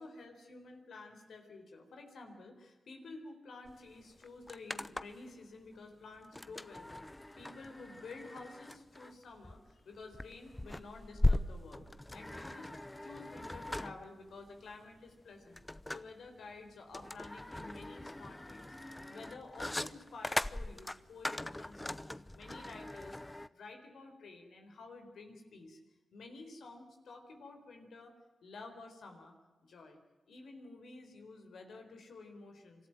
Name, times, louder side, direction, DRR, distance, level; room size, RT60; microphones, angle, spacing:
voice 1, 0.0-7.1 7.4-11.8 12.1-15.6 15.9-18.8 19.1-25.8 26.1-28.1 28.4-29.3 29.6-30.0 30.3-32.9, left 3 dB, 75° left, 4 dB, 4.2 m, -51 dB
sound 1, 3.7-3.8 4.0-5.3 6.3-23.5, left 1 dB, 15° left, 0.9 m, -39 dB
25.5 x 14.0 x 9.2 m, 1.2 s
supercardioid pair, 50°, 0 cm